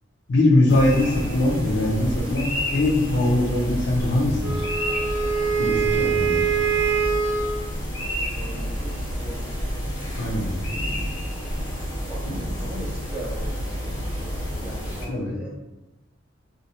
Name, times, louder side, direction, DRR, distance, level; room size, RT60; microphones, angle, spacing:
voice 1, 0.3-4.7 5.6-6.4 10.2-10.5 15.1-15.3, left 1 dB, 60° left, -3 dB, 0.5 m, -21 dB
sound 1, 0.7-15.1, equal, 80° left, 1.0 m, -30 dB
Wind instrument woodwind instrument, 4.4-7.7, right 6 dB, 60° right, 0.5 m, -23 dB
voice 2, 7.9-9.5 10.2-11.0 12.1-15.6, equal, 10° right, -4 dB, 0.6 m, -39 dB
2.5 x 2.0 x 2.8 m, 1.0 s
head